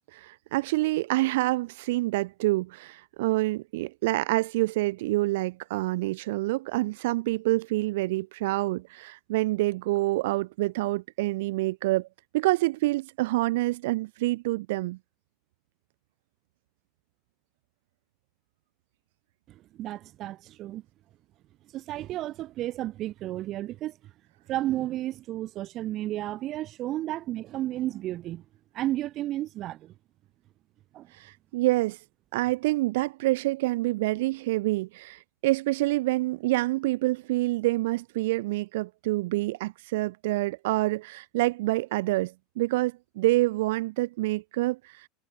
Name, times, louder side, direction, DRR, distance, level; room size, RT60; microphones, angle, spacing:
voice 1, 0.1-12.1 12.3-15.0 31.1-32.0 32.3-45.1, right 19 dB, 80° right, 0.9 m, -27 dB
voice 2, 19.5-20.8 21.7-23.9 24.5-28.4 28.7-29.9 30.9-31.1, right 14 dB, 45° right, 2.7 m, -32 dB
supercardioid pair, 140°, 0 cm